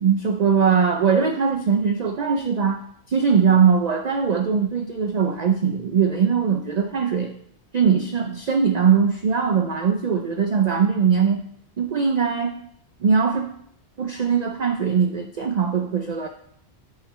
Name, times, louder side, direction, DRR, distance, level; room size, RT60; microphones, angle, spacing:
voice 1, 0.0-2.8 3.1-7.3 7.7-11.4 11.8-12.6 13.0-13.5 14.0-16.3, right 6 dB, 55° right, 6 dB, 0.5 m, -21 dB
8.0 x 6.4 x 3.1 m, 0.68 s
omnidirectional pair, 1.1 m